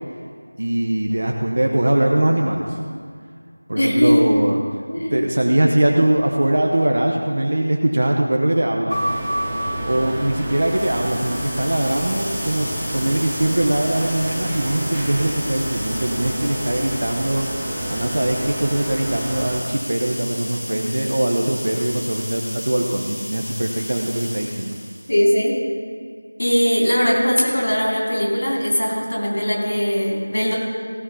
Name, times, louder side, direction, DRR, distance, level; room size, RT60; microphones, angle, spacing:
voice 1, 0.6-2.8 3.7-4.6 5.0-9.0 9.8-17.5 17.9-24.8, right 1 dB, 45° right, 1 dB, 0.9 m, -21 dB
voice 2, 3.7-4.4 4.9-5.2 25.1-25.6 26.4-30.6, equal, 55° left, -3 dB, 3.3 m, -19 dB
sound 1, 8.9-12.7 13.6-14.3, equal, 85° left, 2.3 m, -31 dB
sound 2, 8.9-19.6, right 1 dB, 5° right, 0.7 m, -30 dB
sound 3, 10.3-25.2, equal, 10° left, 1.5 m, -33 dB
16.5 x 6.3 x 5.6 m, 2.1 s
figure-of-eight pair, 175°, 0 cm